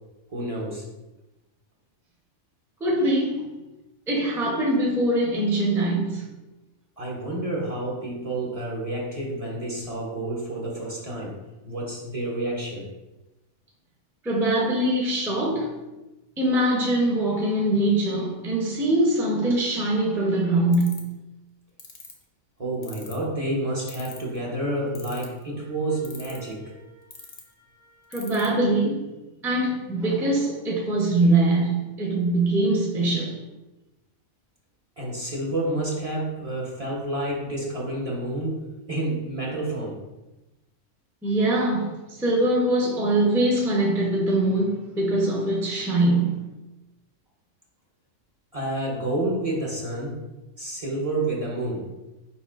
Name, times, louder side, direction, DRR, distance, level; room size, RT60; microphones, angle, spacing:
voice 1, 0.3-0.8 7.0-11.4 11.6-12.9 22.6-28.1 35.0-40.0 48.5-50.2 50.6-51.9, right 1 dB, 35° right, 0.9 m, -29 dB
voice 2, 2.8-3.4 4.1-6.3 14.2-15.7 16.4-21.1 28.1-29.1 29.4-33.4 41.2-46.4, right 1 dB, ahead, 0.6 m, -23 dB
sound 1, 20.7-21.1 21.8-22.1 22.8-23.2 23.9-24.4 24.9-25.4 26.0-26.5 27.1-27.4 28.1-28.5, left 6 dB, 55° left, 0.9 m, -41 dB
4.8 x 4.3 x 2.4 m
omnidirectional pair, 1.3 m